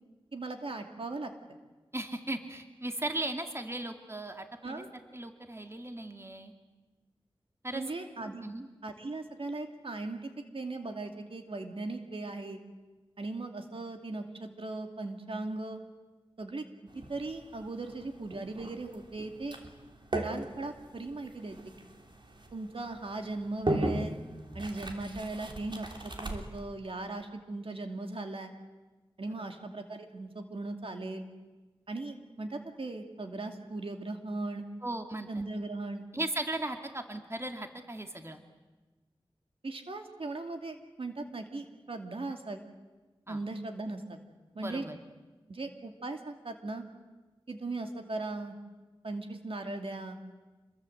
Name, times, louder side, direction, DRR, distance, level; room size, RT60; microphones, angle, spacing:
voice 1, 0.3-1.3 4.6-4.9 7.7-8.4 8.8-12.6 13.2-15.8 16.4-16.6 17.1-19.6 20.1-21.6 22.5-24.2 24.5-28.5 29.2-31.3 31.9-34.6 35.3-36.0 39.6-42.6 43.3-44.2 44.5-44.8 45.5-46.8 47.5-48.5 49.0-50.2, right 2 dB, 70° right, 5 dB, 2.5 m, -38 dB
voice 2, 1.9-4.8 5.1-6.5 7.6-7.8 8.4-8.7 29.4-29.5 34.8-35.4 36.1-38.4 43.3-43.4 44.6-45.0, right 1 dB, 25° right, 5 dB, 2.4 m, -37 dB
sound 1, 16.9-26.6, right 1 dB, 55° right, 3.3 m, -38 dB
28.0 x 22.0 x 8.0 m, 1.2 s
wide cardioid pair, 55°, 10 cm